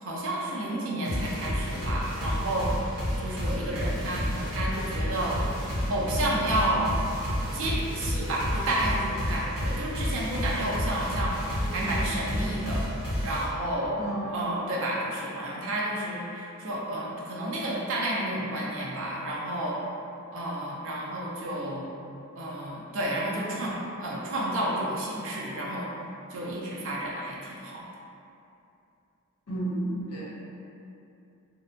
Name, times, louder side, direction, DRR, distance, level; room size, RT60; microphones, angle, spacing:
voice 1, 0.0-2.8 3.2-5.4 5.9-7.0 7.5-12.9 13.2-14.0 14.3-19.8 20.3-21.9 22.4-25.9 26.3-27.9, right 1 dB, 60° right, -4 dB, 0.5 m, -31 dB
sound 1, 1.0-13.4, equal, 85° right, 0.9 m, -31 dB
voice 2, 14.0-14.5 29.5-30.3, right 1 dB, 80° left, -6 dB, 0.6 m, -32 dB
2.6 x 2.1 x 2.5 m, 2.7 s
head